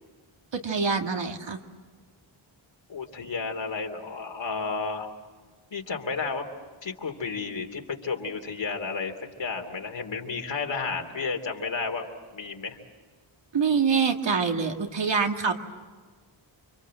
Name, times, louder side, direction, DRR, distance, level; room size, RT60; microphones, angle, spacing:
voice 1, 0.5-1.6 13.5-15.5, right 5 dB, 65° right, 4 dB, 2.2 m, -25 dB
voice 2, 2.9-5.1 5.7-6.4 6.8-9.1 9.4-12.1 12.3-12.8, left 4 dB, 65° left, 3 dB, 3.1 m, -32 dB
29.5 x 25.5 x 7.7 m, 1.4 s
wide cardioid pair, 115°, 47 cm